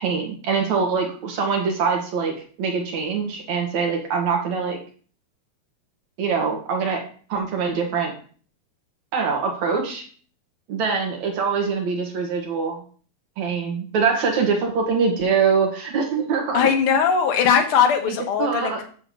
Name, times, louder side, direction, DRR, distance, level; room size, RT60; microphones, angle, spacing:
voice 1, 0.0-4.8 6.2-7.0 7.3-8.1 9.1-10.0 10.7-12.8 13.4-16.7 18.1-18.8, right 5 dB, 70° right, 2 dB, 2.9 m, -23 dB
voice 2, 16.5-18.8, left 7 dB, 55° left, 3 dB, 1.8 m, -19 dB
9.6 x 3.4 x 6.9 m, 0.43 s
omnidirectional pair, 3.4 m